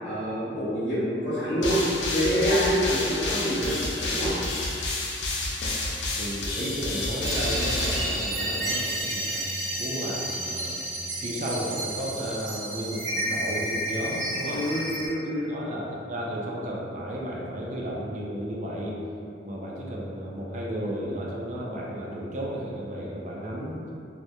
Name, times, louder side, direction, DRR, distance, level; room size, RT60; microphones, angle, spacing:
voice 1, 0.0-1.8 2.1-3.8 4.1-4.3 14.5-15.5, equal, 35° left, -15 dB, 0.6 m, -26 dB
sound 1, 1.6-8.9, left 2 dB, 80° left, 0.4 m, -30 dB
voice 2, 6.1-9.4 9.8-10.8 11.2-14.7 15.4-19.0 19.4-23.8, equal, 40° right, -4 dB, 0.3 m, -33 dB
sound 2, 7.2-15.1, right 1 dB, 85° right, 0.6 m, -31 dB
2.2 x 2.1 x 2.8 m, 2.5 s
head